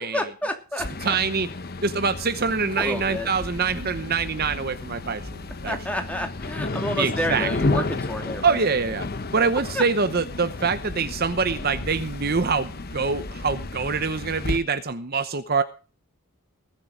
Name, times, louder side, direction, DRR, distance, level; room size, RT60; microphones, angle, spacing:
voice 1, 0.0-1.2 2.8-3.3 5.6-8.7 9.7-9.8, left 1 dB, 5° left, 4 dB, 2.7 m, -30 dB
sound 1, 0.8-14.6, left 2 dB, 45° left, 1.0 m, -32 dB
voice 2, 1.0-1.5 1.8-5.8 7.0-7.5 8.4-15.6, right 5 dB, 45° right, 10 dB, 0.8 m, -25 dB
20.0 x 7.7 x 5.1 m, 0.36 s
head